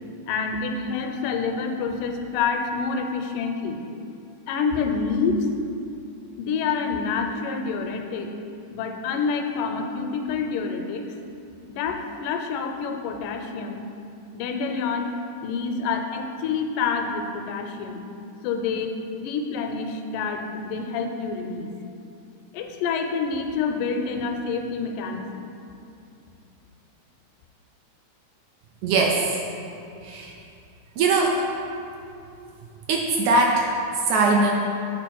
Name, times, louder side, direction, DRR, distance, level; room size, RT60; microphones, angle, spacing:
voice 1, 0.3-3.8 4.5-5.5 6.4-8.3 8.7-11.1 11.7-13.8 14.3-15.1 15.4-18.1 18.4-21.7 22.5-25.5, left 5 dB, 85° left, 5 dB, 2.2 m, -27 dB
voice 2, 28.8-29.3 30.0-30.3 31.0-31.4 32.9-33.7 34.1-34.5, right 3 dB, 80° right, 1 dB, 1.7 m, -20 dB
8.3 x 4.5 x 4.6 m, 2.6 s
omnidirectional pair, 3.7 m